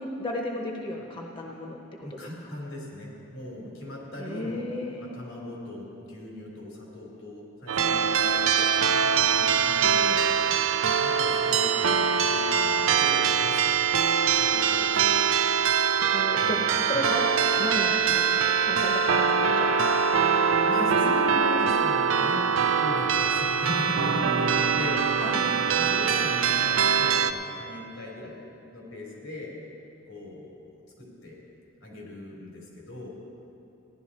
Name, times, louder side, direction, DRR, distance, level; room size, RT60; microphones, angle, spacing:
voice 1, 0.0-2.2 4.2-5.1 16.1-20.1 20.7-20.9 24.8-24.9 25.2-25.5, left 1 dB, 25° left, 1 dB, 0.9 m, -34 dB
voice 2, 2.0-4.7 5.0-8.7 9.1-10.2 11.0-13.7 14.3-15.0 16.4-17.6 17.9-18.2 20.5-22.5 22.8-28.4 28.7-29.6 30.1-31.4 31.8-33.1, left 1 dB, 90° left, -3 dB, 3.6 m, -38 dB
sound 1, 7.7-27.3, right 6 dB, 75° right, 0.5 m, -23 dB
16.0 x 11.0 x 4.2 m, 2.8 s
head